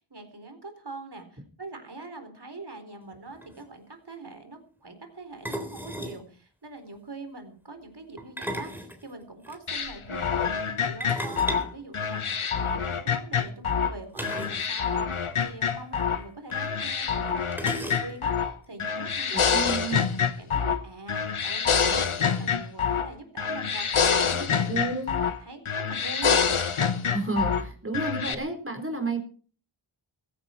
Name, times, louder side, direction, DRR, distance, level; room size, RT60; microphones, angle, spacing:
voice 1, 0.0-19.6 20.4-24.9 25.4-26.5, right 2 dB, 50° right, 7 dB, 4.4 m, -43 dB
sound 1, 3.1-3.2 3.4-3.6 5.4-6.2 8.2-9.6 11.0-12.7 14.1-14.7 14.9-15.0 15.3-15.5 16.5-16.6 17.5-18.4, equal, 5° right, 3.6 m, -35 dB
sound 2, 9.7-13.9 14.2-16.2 16.5-18.5 18.8-20.8 21.1-23.1 23.4-25.4 25.7-27.6 27.9-28.3, left 6 dB, 85° left, 1.3 m, -26 dB
voice 2, 19.3-20.1 24.7-25.1 27.1-29.2, right 3 dB, 25° right, 6 dB, 4.7 m, -31 dB
16.0 x 15.5 x 4.6 m, 0.40 s
wide cardioid pair, 45°, 49 cm